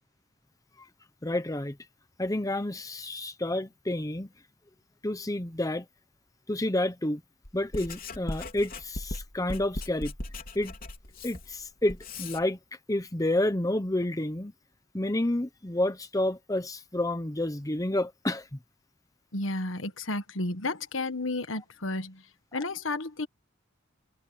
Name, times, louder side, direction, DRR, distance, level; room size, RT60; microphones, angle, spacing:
voice 1, 1.2-1.8 2.2-4.3 5.0-5.8 6.5-7.2 7.5-10.1 10.5-10.7 11.2-12.6 12.9-14.5 14.9-18.6, left 1 dB, 15° left, 0.9 m, -29 dB
Writing, 7.4-12.4, left 2 dB, 45° left, 3.7 m, -38 dB
voice 2, 19.3-22.2 22.5-23.3, left 2 dB, 70° left, 1.6 m, -32 dB
head